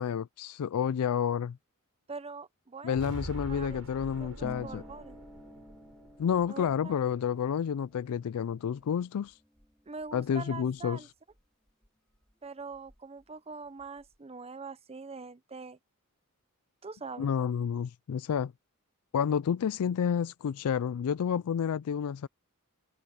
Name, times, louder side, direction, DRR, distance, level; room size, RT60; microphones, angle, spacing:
voice 1, 0.0-1.6 2.8-4.8 6.2-9.4 10.1-11.0 17.2-18.5 19.1-22.3, left 7 dB, 75° left, 0.4 m, -30 dB
voice 2, 2.1-3.1 3.5-3.8 4.2-5.2 6.5-7.0 9.9-11.1 12.4-15.8 16.8-17.3, right 4 dB, 25° right, 0.8 m, -43 dB
sound 1, 3.0-7.1, right 1 dB, 85° right, 4.6 m, -44 dB
Harp, 4.4-11.9 12.1-13.3 13.5-14.2, equal, 5° left, 5.1 m, -53 dB
head